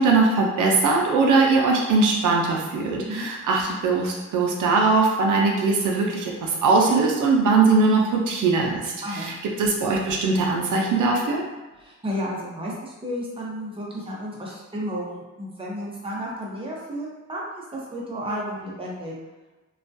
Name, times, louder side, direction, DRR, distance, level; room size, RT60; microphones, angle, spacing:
voice 1, 0.0-9.3 9.6-11.4, right 3 dB, 85° right, -1 dB, 0.5 m, -21 dB
voice 2, 9.0-9.3 11.8-19.1, equal, 20° right, -4 dB, 0.7 m, -32 dB
2.3 x 2.2 x 2.6 m, 1.1 s
cardioid pair, 85°, 30 cm